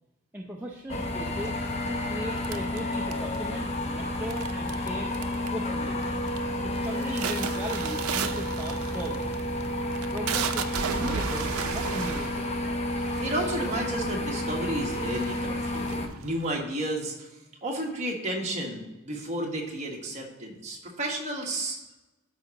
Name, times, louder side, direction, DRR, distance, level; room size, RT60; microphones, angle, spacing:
voice 1, 0.3-1.6 1.8-5.1 5.5-6.0 6.6-9.4 10.1-12.6, right 1 dB, 10° right, -2 dB, 0.5 m, -38 dB
sound 1, 0.9-16.1, left 1 dB, 30° left, 0.7 m, -31 dB
sound 2, 2.4-3.5 4.3-4.9 5.1-5.7 6.0-6.4 6.8-13.8 14.5-14.6 14.9-16.5, right 7 dB, 75° right, 0.5 m, -34 dB
voice 2, 13.2-17.3 17.6-21.8, right 1 dB, 30° right, -1 dB, 1.4 m, -32 dB
12.5 x 4.8 x 2.9 m, 1.0 s
head